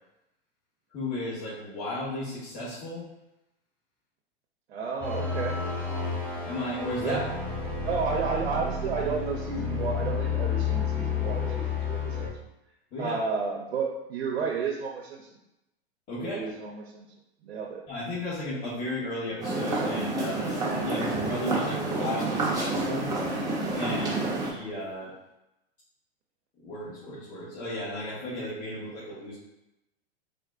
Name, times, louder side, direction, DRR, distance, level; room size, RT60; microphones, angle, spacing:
voice 1, 0.9-3.1 6.4-7.2 12.9-13.2 16.1-16.5 17.9-23.1 23.7-25.1 26.6-29.4, left 1 dB, 25° left, -11 dB, 1.2 m, -34 dB
voice 2, 4.7-5.6 7.0-7.3 7.7-12.3 13.0-15.3 16.2-17.1 17.4-17.8 24.0-24.3, right 5 dB, 85° right, -1 dB, 0.7 m, -32 dB
sound 1, 5.0-12.3, left 5 dB, 5° left, 0.4 m, -30 dB
sound 2, 19.4-24.5, right 2 dB, 10° right, 0.8 m, -29 dB
3.9 x 2.2 x 3.6 m, 0.90 s
hypercardioid pair, 130°, 32 cm